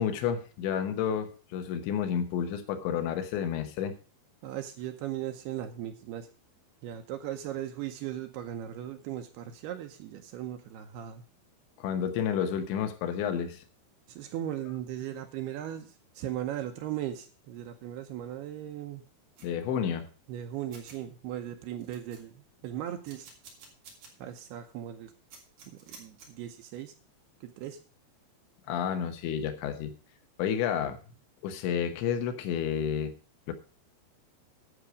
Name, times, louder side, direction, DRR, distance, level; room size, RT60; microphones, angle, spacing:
voice 1, 0.0-3.9 11.8-13.6 19.4-20.1 28.7-29.9 30.4-31.0 31.4-33.2 33.5-33.6, left 8 dB, 80° left, 8 dB, 3.4 m, -30 dB
voice 2, 4.4-6.3 6.8-11.2 14.1-19.0 20.3-22.3 22.6-23.3 24.2-25.1 25.7-26.9 27.4-27.8, right 11 dB, 75° right, 6 dB, 2.5 m, -37 dB
sound 1, 19.4-19.5 20.4-20.5 20.7-21.0 21.4-21.5 21.8-22.5 23.0-24.1 24.5-24.6 25.3-26.3, right 5 dB, 50° right, 4.4 m, -51 dB
11.5 x 8.1 x 5.0 m, 0.38 s
omnidirectional pair, 5.3 m